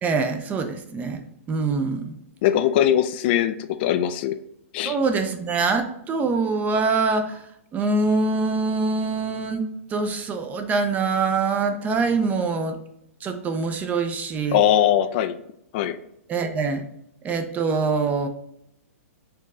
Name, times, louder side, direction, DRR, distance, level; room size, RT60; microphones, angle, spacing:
voice 1, 0.0-1.2 1.5-2.2 4.9-7.4 7.7-12.8 13.2-14.6 16.3-16.8 17.2-18.3, right 4 dB, 20° right, 9 dB, 0.5 m, -24 dB
voice 2, 2.4-4.4 4.7-5.0 14.5-15.4 15.7-16.0, left 11 dB, 45° left, 11 dB, 0.3 m, -21 dB
4.4 x 3.0 x 3.7 m, 0.76 s
hypercardioid pair, 130°, 8 cm